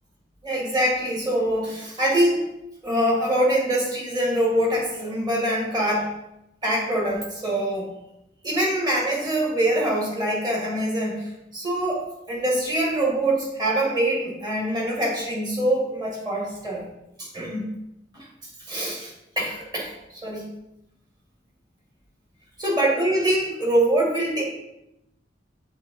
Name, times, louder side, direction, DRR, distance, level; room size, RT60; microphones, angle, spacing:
voice 1, 0.4-2.4 2.8-6.1 6.6-7.9 8.4-16.8 17.2-17.6 18.1-18.3 18.7-20.5 22.6-24.4, right 1 dB, 20° right, -3 dB, 1.9 m, -24 dB
7.3 x 3.5 x 5.3 m, 0.87 s
head